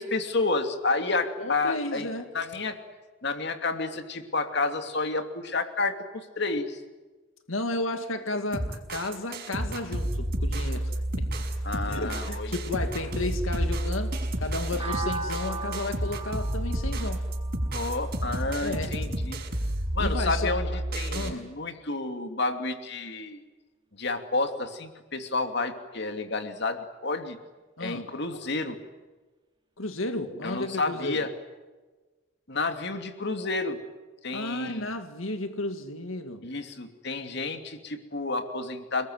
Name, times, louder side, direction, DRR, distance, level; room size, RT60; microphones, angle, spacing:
voice 1, 0.0-2.8 3.2-6.8 11.6-12.6 17.7-19.4 19.9-23.4 23.9-27.4 27.8-28.8 30.4-31.3 32.5-33.8 34.2-34.9 36.4-39.1, left 3 dB, 55° left, 7 dB, 2.8 m, -30 dB
voice 2, 1.4-2.3 7.5-11.3 11.9-17.3 18.6-19.0 20.0-20.6 21.1-21.5 27.8-28.1 29.8-31.2 34.3-36.5, left 2 dB, 85° left, 7 dB, 2.2 m, -33 dB
sound 1, 8.5-21.3, right 1 dB, 50° right, 5.7 m, -30 dB
sound 2, 14.8-18.7, right 3 dB, 25° right, 2.9 m, -38 dB
30.0 x 20.5 x 9.4 m, 1.3 s
head